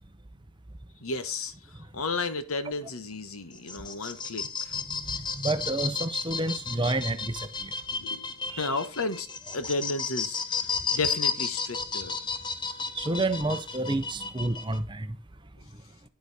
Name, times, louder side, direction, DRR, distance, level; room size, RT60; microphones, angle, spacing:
voice 1, 1.0-1.5 1.9-4.7 7.9-9.3 9.5-12.2, left 3 dB, 80° left, 1.3 m, -33 dB
sound 1, 3.5-14.8, left 5 dB, 20° left, 0.8 m, -33 dB
voice 2, 5.1-7.7 8.5-8.8 12.9-15.2, right 2 dB, 20° right, 0.7 m, -30 dB
9.6 x 8.1 x 4.1 m
head